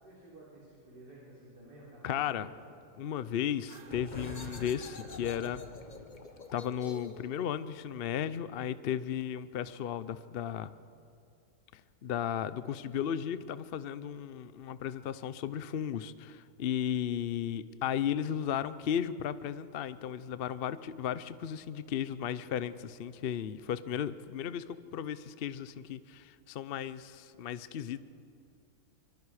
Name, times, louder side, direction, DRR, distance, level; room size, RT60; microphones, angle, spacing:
voice 1, 0.0-2.6, right 1 dB, 80° right, -7 dB, 4.5 m, -52 dB
voice 2, 2.0-2.5 3.0-5.6 6.5-10.7 11.7-28.0, left 9 dB, 70° left, 14 dB, 0.5 m, -35 dB
sound 1, 3.6-5.9, right 5 dB, 55° right, 1.3 m, -56 dB
sound 2, 3.8-9.2, left 3 dB, 30° left, 1.1 m, -46 dB
24.5 x 24.0 x 4.9 m, 2.5 s
omnidirectional pair, 1.8 m